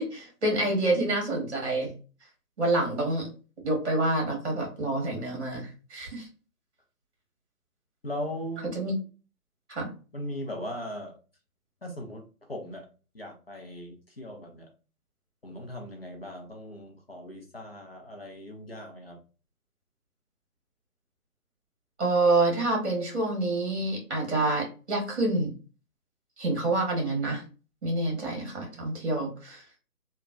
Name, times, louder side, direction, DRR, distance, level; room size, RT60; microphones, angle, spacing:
voice 1, 0.0-1.9 2.6-3.3 3.6-6.3 8.7-9.0 9.7-9.9 22.0-25.5 26.4-27.4 27.8-29.6, right 2 dB, 45° right, 0 dB, 1.4 m, -27 dB
voice 2, 8.0-8.7 10.1-11.2 11.8-12.2 12.5-12.9 13.1-14.7 15.4-19.2, left 1 dB, 40° left, 0 dB, 0.5 m, -38 dB
3.0 x 2.2 x 2.5 m, 0.35 s
figure-of-eight pair, 155°, 45 cm